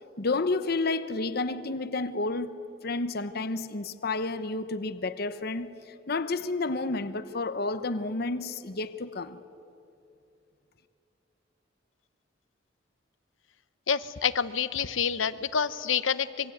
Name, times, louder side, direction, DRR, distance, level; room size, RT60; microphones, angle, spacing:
voice 1, 0.2-2.5 2.8-5.7 6.1-9.4, left 3 dB, 50° left, 0.9 m, -30 dB
voice 2, 13.9-16.5, left 7 dB, 80° left, 0.9 m, -28 dB
25.5 x 23.0 x 9.3 m
head